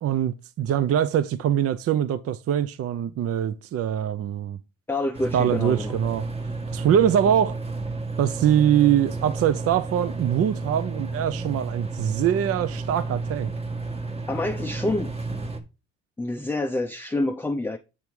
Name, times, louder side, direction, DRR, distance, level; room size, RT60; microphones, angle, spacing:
voice 1, 0.0-4.6 5.3-6.3 6.7-7.6 8.2-13.5, right 10 dB, 50° right, 0.5 m, -23 dB
voice 2, 4.9-6.0 14.3-15.1 16.2-17.8, left 2 dB, 5° left, 0.5 m, -27 dB
sound 1, 5.1-15.6, right 3 dB, 20° right, 1.2 m, -32 dB
8.3 x 3.5 x 4.5 m
cardioid pair, 90°, 30 cm